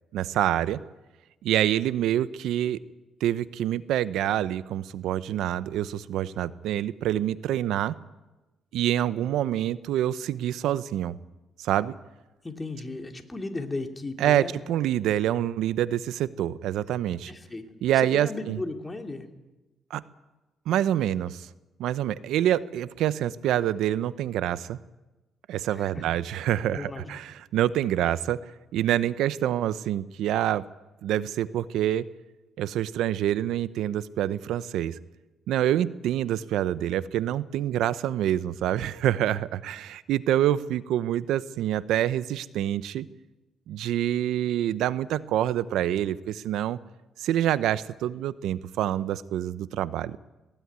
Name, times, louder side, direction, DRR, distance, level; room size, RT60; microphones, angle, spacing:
voice 1, 0.1-0.8 1.4-2.8 3.2-7.9 8.7-11.1 11.6-11.9 14.2-17.3 17.8-18.6 19.9-20.0 20.7-21.5 21.8-24.8 25.5-28.4 28.7-30.7 31.0-32.1 32.6-35.0 35.5-43.1 43.7-46.8 47.2-50.2, right 12 dB, 85° right, 16 dB, 0.7 m, -26 dB
voice 2, 12.4-14.5 17.3-17.6 17.9-19.3 25.7-26.0 26.7-27.2, left 2 dB, 20° left, 5 dB, 2.9 m, -35 dB
19.0 x 19.0 x 9.6 m, 1.1 s
cardioid pair, 90°, 0 cm